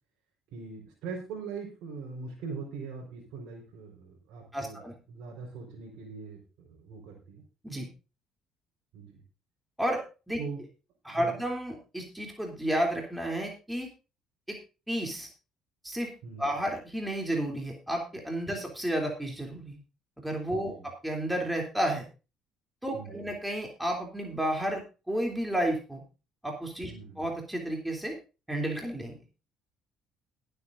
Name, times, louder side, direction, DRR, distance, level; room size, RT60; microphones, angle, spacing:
voice 1, 0.5-4.8 5.1-7.4 8.9-9.2 10.4-10.6 11.1-11.4 16.2-16.5 20.5-20.9 22.9-23.2 26.9-27.2, right 5 dB, 65° right, -2 dB, 4.4 m, -41 dB
voice 2, 4.5-4.9 7.6-7.9 9.8-10.0 10.3-10.4 11.0-13.9 14.5-14.6 14.9-15.3 15.8-16.1 16.4-19.8 20.2-22.0 22.8-26.0 26.4-26.9 27.2-28.2 28.5-29.2, right 1 dB, 5° right, 1 dB, 3.1 m, -31 dB
21.5 x 8.1 x 2.6 m, 0.32 s
hypercardioid pair, 55°, 0 cm